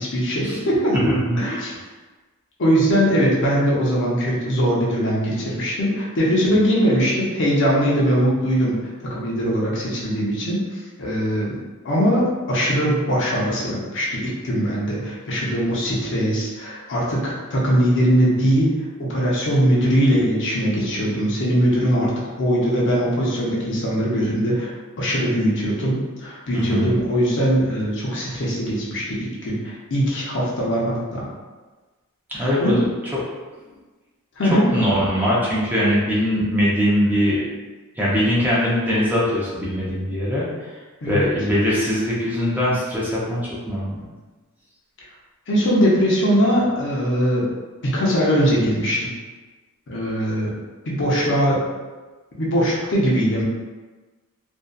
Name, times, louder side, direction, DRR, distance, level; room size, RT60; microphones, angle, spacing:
voice 1, 0.0-1.0 1.4-1.7 2.6-8.8 9.0-11.6 11.8-18.7 19.0-22.1 22.4-31.3 32.3-32.8 34.4-34.7 41.0-41.2 45.5-47.5 47.8-49.1 49.9-50.5 50.8-51.7 52.4-53.4, equal, 55° left, -5 dB, 0.6 m, -21 dB
voice 2, 1.1-1.4 26.5-27.0 32.3-32.8 34.5-37.4 37.9-40.8 41.1-44.1, equal, 10° right, -8 dB, 0.5 m, -21 dB
2.6 x 2.2 x 2.2 m, 1.3 s
head